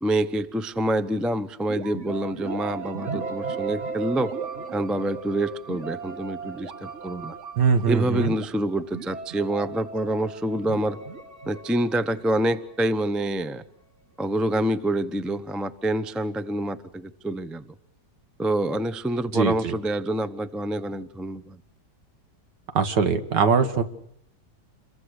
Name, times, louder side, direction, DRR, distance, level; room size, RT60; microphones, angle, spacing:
voice 1, 0.0-4.3 4.7-7.3 7.9-11.0 11.5-13.6 14.2-17.7 18.4-21.6, right 1 dB, ahead, 13 dB, 0.4 m, -27 dB
sound 1, 1.7-13.4, right 5 dB, 40° right, 1.9 m, -36 dB
voice 2, 7.6-8.3 19.3-19.7 22.7-23.8, right 5 dB, 75° right, 9 dB, 2.1 m, -21 dB
28.0 x 22.5 x 6.6 m, 0.69 s
omnidirectional pair, 1.9 m